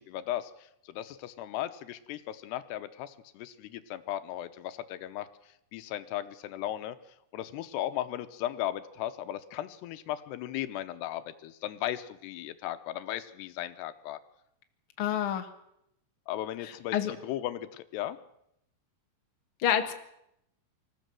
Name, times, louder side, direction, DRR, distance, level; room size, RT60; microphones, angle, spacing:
voice 1, 0.0-7.0 7.3-14.2 16.3-18.2, left 13 dB, 85° left, 11 dB, 3.0 m, -36 dB
voice 2, 15.0-15.5 16.6-17.1 19.6-19.9, left 10 dB, 50° left, 5 dB, 1.6 m, -28 dB
25.5 x 14.0 x 7.7 m, 0.80 s
omnidirectional pair, 4.7 m